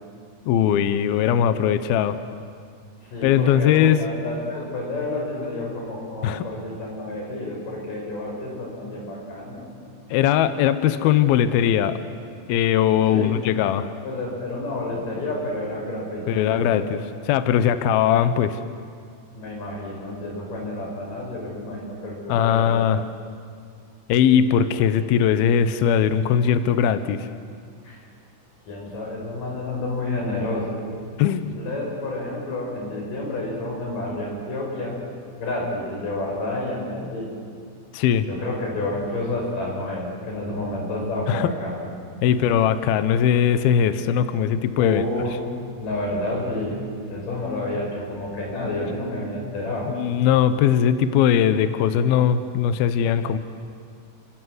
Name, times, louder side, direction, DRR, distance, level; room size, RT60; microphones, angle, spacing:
voice 1, 0.5-2.2 3.2-4.0 6.2-6.5 10.1-12.0 12.5-13.9 16.3-18.6 22.3-23.0 24.1-27.3 31.2-31.5 37.9-38.3 41.3-41.5 42.2-45.0 49.9-53.4, left 9 dB, 85° left, 11 dB, 2.1 m, -20 dB
voice 2, 3.1-9.9 13.1-13.4 14.0-16.9 19.3-22.9 27.8-28.0 28.7-30.8 31.5-35.0 35.4-37.3 38.3-41.7 42.2-42.7 44.8-45.4 45.8-49.9, left 2 dB, 40° left, -1 dB, 7.6 m, -30 dB
30.0 x 24.5 x 7.9 m, 2.2 s
omnidirectional pair, 5.7 m